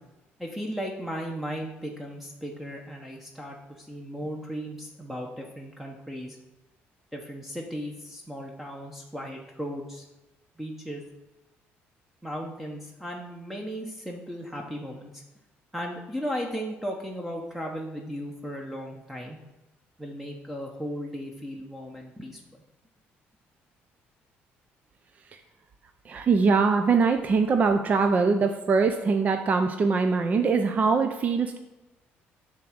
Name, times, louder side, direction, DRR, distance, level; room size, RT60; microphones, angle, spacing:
voice 1, 0.4-6.4 7.1-10.1 10.6-11.0 12.2-15.1 15.7-19.4 20.0-22.4, equal, 5° right, 0 dB, 0.9 m, -36 dB
voice 2, 26.1-31.6, right 4 dB, 35° right, 6 dB, 0.5 m, -22 dB
7.4 x 3.7 x 6.1 m, 1.0 s
cardioid pair, 115°, 4 cm